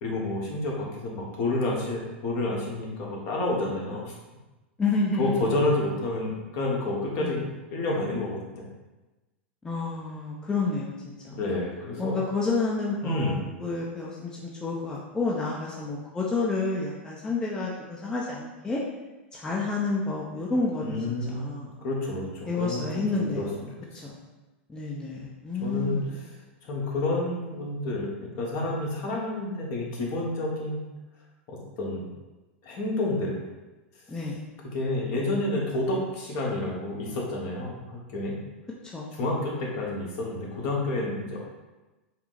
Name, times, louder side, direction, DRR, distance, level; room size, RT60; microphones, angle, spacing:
voice 1, 0.0-4.1 5.2-8.7 11.3-12.2 13.0-13.5 20.8-21.5 21.8-24.0 25.6-26.0 26.6-30.9 31.5-32.0 32.6-33.4 34.7-38.3 39.2-41.5, left 2 dB, 50° left, -2 dB, 1.1 m, -29 dB
voice 2, 4.8-5.6 7.2-7.5 9.6-10.9 11.2-11.3 12.0-18.8 19.3-21.0 21.3-21.8 22.5-23.5 24.0-24.1 24.7-26.2 34.1-34.4 38.9-39.1, left 3 dB, 10° left, -5 dB, 0.5 m, -29 dB
4.4 x 2.0 x 3.8 m, 1.1 s
hypercardioid pair, 120°, 6 cm